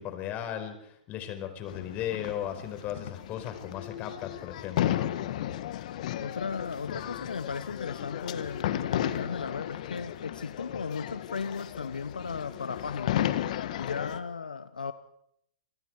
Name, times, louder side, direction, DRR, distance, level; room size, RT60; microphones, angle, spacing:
voice 1, 0.0-5.1, left 10 dB, 35° left, 4.9 m, -36 dB
sound 1, 1.7-14.2, left 12 dB, 60° left, 1.7 m, -34 dB
voice 2, 6.2-13.4 13.8-14.9, left 5 dB, 85° left, 1.0 m, -36 dB
27.0 x 24.0 x 4.7 m
hypercardioid pair, 115°, 4 cm